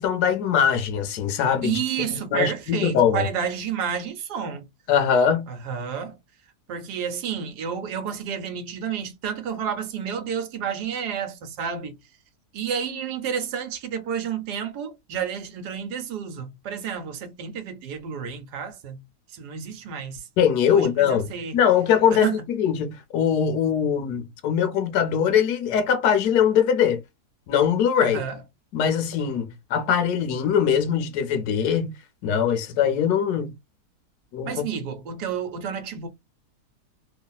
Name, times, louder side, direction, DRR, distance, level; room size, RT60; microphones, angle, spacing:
voice 1, 0.0-1.8 2.3-3.3 4.9-5.5 20.4-27.0 27.5-28.2 28.7-31.9 32.2-33.5 34.3-34.6, left 8 dB, 80° left, 1.2 m, -22 dB
voice 2, 1.6-4.7 5.5-6.2 6.7-12.0 12.5-19.0 19.3-20.3 20.7-21.6 22.1-22.5 28.0-28.4 34.4-36.1, right 7 dB, 85° right, 1.3 m, -30 dB
3.1 x 2.4 x 2.2 m
omnidirectional pair, 1.7 m